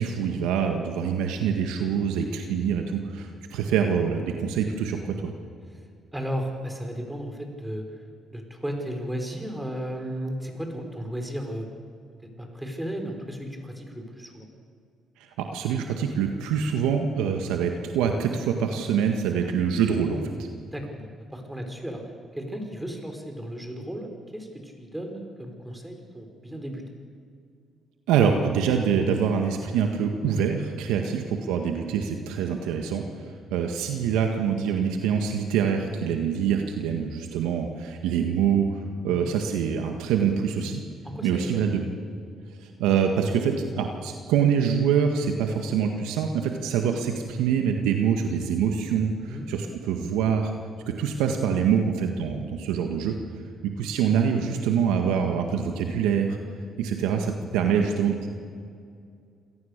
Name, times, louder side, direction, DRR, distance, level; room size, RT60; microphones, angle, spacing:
voice 1, 0.0-5.3 15.4-20.3 28.1-33.0 33.5-40.8 41.2-41.8 42.6-50.5 50.9-53.2 53.6-56.4 56.8-58.3, right 7 dB, 90° right, 4 dB, 1.8 m, -25 dB
voice 2, 6.1-7.9 8.3-11.7 12.4-14.5 19.3-19.6 20.7-22.0 22.3-26.8 31.0-31.2 39.1-39.3 40.6-40.8 41.0-41.6 49.1-49.5, equal, 10° right, 3 dB, 5.4 m, -35 dB
28.0 x 17.5 x 6.8 m, 2.3 s
supercardioid pair, 70°, 0 cm